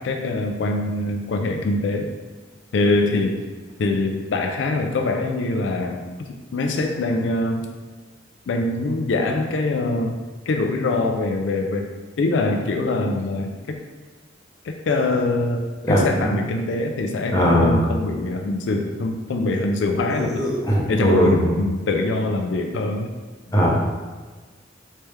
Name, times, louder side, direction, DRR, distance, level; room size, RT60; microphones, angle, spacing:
voice 1, 0.0-2.1 2.7-3.4 3.8-6.0 6.5-7.7 8.5-10.2 10.5-11.9 12.2-13.8 14.6-20.4 20.9-23.1 23.5-23.6, left 2 dB, 75° left, 3 dB, 0.4 m, -23 dB
voice 2, 15.9-16.3 17.3-17.8 20.1-21.4 23.5-23.7, equal, 20° left, -4 dB, 0.7 m, -19 dB
3.3 x 3.1 x 3.2 m, 1.4 s
head